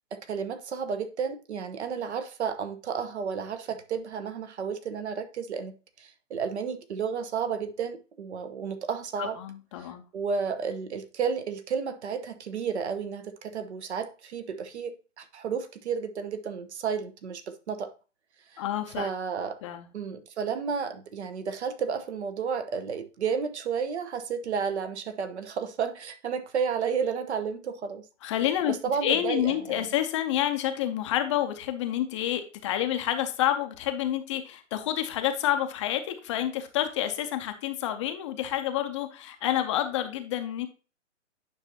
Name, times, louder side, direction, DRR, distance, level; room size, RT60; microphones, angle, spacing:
voice 1, 0.1-9.4 9.8-9.9 10.1-17.9 18.5-18.6 19.0-19.6 19.9-28.0 28.7-29.9, right 6 dB, 65° right, 1.0 m, -32 dB
voice 2, 9.2-10.0 18.6-19.1 19.6-19.9 28.2-28.7 29.0-40.7, left 11 dB, 25° left, 0.6 m, -28 dB
9.1 x 5.5 x 2.8 m
hypercardioid pair, 130°, 37 cm